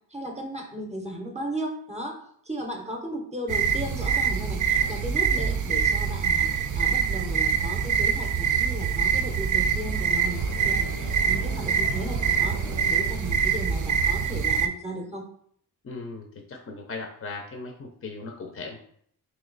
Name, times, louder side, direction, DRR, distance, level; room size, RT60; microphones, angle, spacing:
voice 1, 0.1-15.3, right 1 dB, 15° right, 2 dB, 0.7 m, -36 dB
sound 1, 3.5-14.7, right 7 dB, 50° right, 0.5 m, -25 dB
sound 2, 4.7-4.9 6.1-13.1, left 4 dB, 85° left, 0.6 m, -45 dB
voice 2, 15.8-18.8, left 3 dB, 35° left, 2 dB, 0.6 m, -38 dB
3.1 x 2.8 x 3.9 m, 0.63 s
cardioid pair, 80°, 39 cm